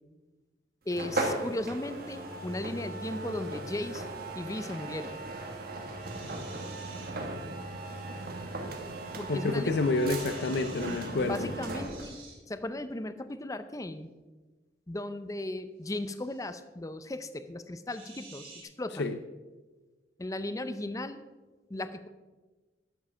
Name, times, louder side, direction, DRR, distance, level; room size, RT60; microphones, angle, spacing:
voice 1, 0.9-4.1 4.3-5.2 9.2-9.7 11.3-12.2 12.5-14.1 14.9-18.5 18.8-19.1 20.2-21.2 21.7-22.1, left 1 dB, 20° left, 11 dB, 0.5 m, -36 dB
sound 1, 0.9-12.2, right 2 dB, 55° right, 1.5 m, -37 dB
sound 2, 6.0-7.1 7.9-8.3 10.0-11.1 11.7-12.4 15.9-16.6 17.9-18.6, right 4 dB, 35° right, 3.6 m, -51 dB
voice 2, 9.3-11.5 19.0-19.2, left 3 dB, 65° left, 8 dB, 0.6 m, -28 dB
11.5 x 7.5 x 5.6 m, 1.2 s
head